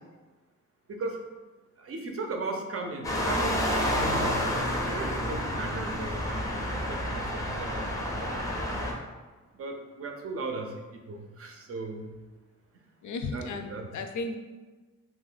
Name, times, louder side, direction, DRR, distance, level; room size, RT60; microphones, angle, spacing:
voice 1, 0.9-1.2 1.8-6.5 6.7-8.1 9.5-12.1 13.3-13.9, right 3 dB, 50° right, 3 dB, 0.5 m, -37 dB
sound 1, 3.0-8.9, equal, 10° left, 0.5 m, -29 dB
voice 2, 13.0-14.4, left 3 dB, 75° left, 6 dB, 0.5 m, -34 dB
2.9 x 2.6 x 3.9 m, 1.3 s
wide cardioid pair, 130°, 30 cm